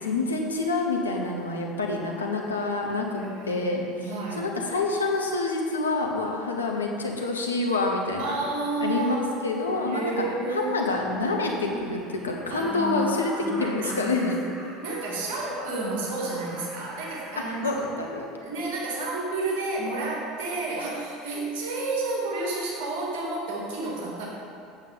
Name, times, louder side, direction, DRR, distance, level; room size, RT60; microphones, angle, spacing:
voice 1, 0.0-8.4 8.8-10.2 10.5-13.3 13.6-14.4 17.5-18.2, left 3 dB, 85° left, 0 dB, 0.9 m, -27 dB
voice 2, 3.1-4.5 8.2-9.4 9.8-10.9 12.5-14.5 14.8-17.8 18.4-24.3, right 2 dB, 60° right, -4 dB, 2.1 m, -31 dB
Laughter, 11.1-18.4, right 1 dB, 20° right, 2.2 m, -43 dB
8.2 x 7.3 x 4.0 m, 2.4 s
figure-of-eight pair, 70°, 0 cm